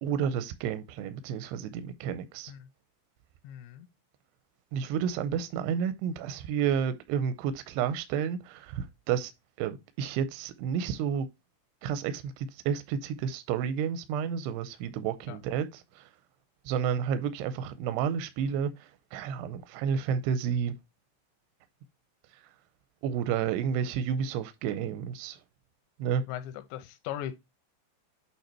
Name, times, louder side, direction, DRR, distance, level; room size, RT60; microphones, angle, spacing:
voice 1, 0.0-2.5 4.7-9.3 9.6-11.3 11.8-16.1 16.7-20.7 22.3-22.5 23.0-25.4 26.0-26.2, right 8 dB, 85° right, 2.6 m, -31 dB
voice 2, 3.4-3.9 15.3-15.4 26.3-26.4 26.7-27.4, left 11 dB, 90° left, 3.0 m, -38 dB
8.5 x 3.2 x 4.3 m
omnidirectional pair, 5.0 m